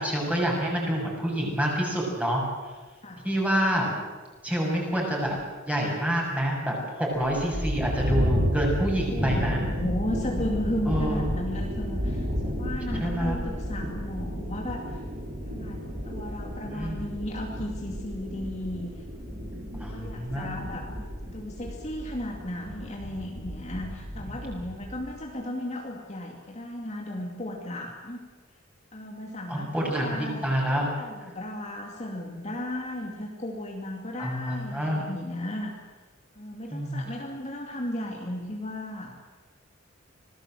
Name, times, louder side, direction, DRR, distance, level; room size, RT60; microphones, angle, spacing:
voice 1, 0.0-2.4 3.2-4.0 4.4-5.4 5.6-9.6 10.9-11.2 13.0-13.4 16.7-17.0 19.8-20.5 29.5-30.9 34.2-35.0 36.7-37.0, equal, 5° right, -2 dB, 6.8 m, -27 dB
sound 1, 7.2-25.2, equal, 40° right, 5.3 m, -32 dB
voice 2, 9.1-15.0 15.5-19.0 19.9-20.9 21.2-28.2 28.9-30.5 31.0-35.7 36.3-39.1, left 1 dB, 35° left, 0 dB, 2.6 m, -35 dB
26.0 x 18.5 x 7.8 m, 1.3 s
head